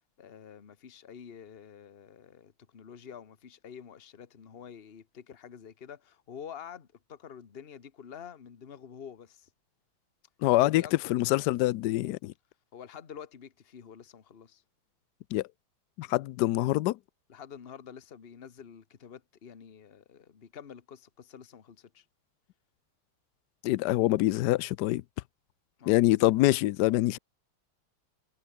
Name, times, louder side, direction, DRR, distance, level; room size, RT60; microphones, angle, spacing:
voice 1, 0.0-9.5 10.6-11.2 12.7-14.6 17.3-22.0 25.8-26.3, left 8 dB, 35° left, 1.3 m, -48 dB
voice 2, 10.4-10.8 11.1-12.3 15.3-15.5 16.0-17.0 23.6-25.0 25.9-27.2, left 17 dB, 75° left, 0.9 m, -25 dB
omnidirectional pair, 2.3 m